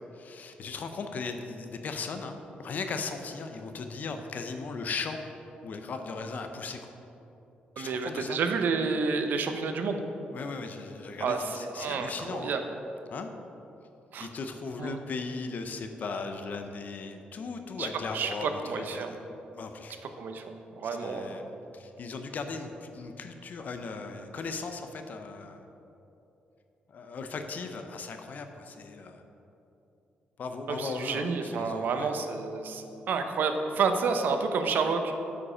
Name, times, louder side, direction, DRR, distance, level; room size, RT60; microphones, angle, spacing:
voice 1, 0.1-5.2 5.6-6.9 7.8-8.4 10.3-12.5 13.1-13.3 14.2-19.2 19.5-20.0 20.8-21.5 21.7-25.7 26.9-29.2 30.4-32.1, left 4 dB, 55° left, 6 dB, 0.6 m, -37 dB
voice 2, 7.8-10.0 11.2-12.6 14.1-14.3 14.8-15.0 17.8-17.9 18.1-19.1 20.2-21.4 30.7-35.1, right 5 dB, 70° right, 6 dB, 0.7 m, -30 dB
8.3 x 5.1 x 5.0 m, 2.9 s
cardioid pair, 100°, 3 cm